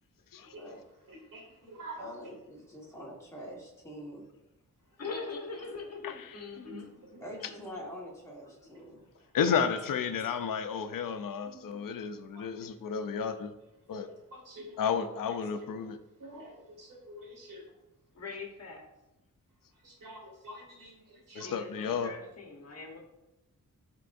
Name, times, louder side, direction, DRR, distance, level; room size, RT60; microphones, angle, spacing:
voice 1, 0.4-0.7 1.1-2.1 6.6-7.3 8.7-8.9 11.4-11.8 12.3-12.5 13.9-15.0 15.3-15.9 16.2-17.6 19.8-21.6, equal, 75° right, -2 dB, 2.2 m, -48 dB
voice 2, 2.0-4.3 7.2-9.0, equal, 10° left, -4 dB, 1.4 m, -45 dB
voice 3, 5.0-6.9 7.4-7.9 9.7-10.2 18.1-18.8 21.4-23.0, left 4 dB, 50° left, 1 dB, 1.1 m, -42 dB
voice 4, 9.3-13.5 13.9-14.1 14.8-16.0 21.3-22.1, left 7 dB, 85° left, 9 dB, 0.6 m, -32 dB
11.0 x 3.7 x 2.6 m, 0.94 s
wide cardioid pair, 175°, 32 cm